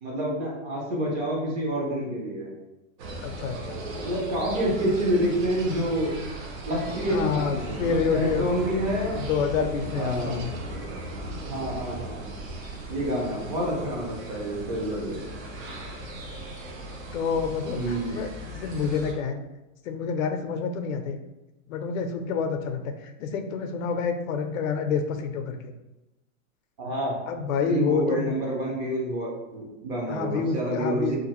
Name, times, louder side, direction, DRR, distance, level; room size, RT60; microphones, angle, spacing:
voice 1, 0.0-2.5 3.9-6.1 6.6-9.2 10.0-10.4 11.4-12.3 12.9-15.2 17.7-18.2 26.8-27.1 27.7-31.2, equal, 30° right, -3 dB, 0.6 m, -28 dB
sound 1, 3.0-19.1, right 2 dB, 80° right, 0.7 m, -37 dB
voice 2, 3.2-3.8 7.1-8.5 9.1-10.5 17.1-19.4 19.8-21.2 21.7-25.7 27.3-28.3 30.1-31.2, left 6 dB, 85° left, 7 dB, 0.5 m, -28 dB
2.5 x 2.4 x 2.9 m, 0.98 s
supercardioid pair, 175°, 39 cm